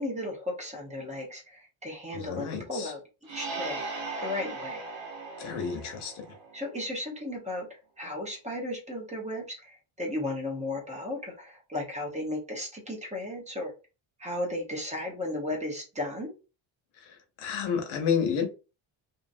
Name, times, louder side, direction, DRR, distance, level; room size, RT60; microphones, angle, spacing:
voice 1, 0.0-3.0 3.3-4.9 6.5-7.7 8.0-13.7 14.2-16.4, left 1 dB, 15° right, 1.0 m, -35 dB
voice 2, 2.1-2.9 5.4-6.1 17.1-18.4, left 7 dB, 85° left, 1.0 m, -30 dB
sound 1, 3.2-6.8, right 3 dB, 65° right, 1.3 m, -38 dB
2.8 x 2.5 x 2.5 m
cardioid pair, 140°, 47 cm